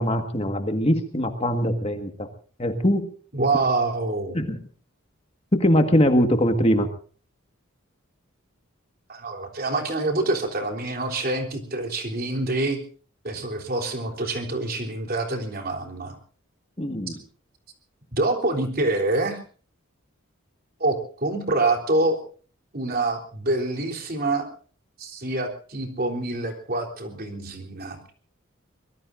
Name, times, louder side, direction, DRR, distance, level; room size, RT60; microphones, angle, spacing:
voice 1, 0.0-2.3 2.6-3.1 4.3-4.6 5.5-6.9 16.8-17.2, equal, 30° left, 6 dB, 1.7 m, -22 dB
voice 2, 3.3-4.4 9.1-12.8 13.2-16.2 18.1-19.4 20.8-22.2 22.7-24.5 25.0-28.1, right 2 dB, 45° right, 3 dB, 3.6 m, -26 dB
24.5 x 21.5 x 2.6 m, 0.41 s
head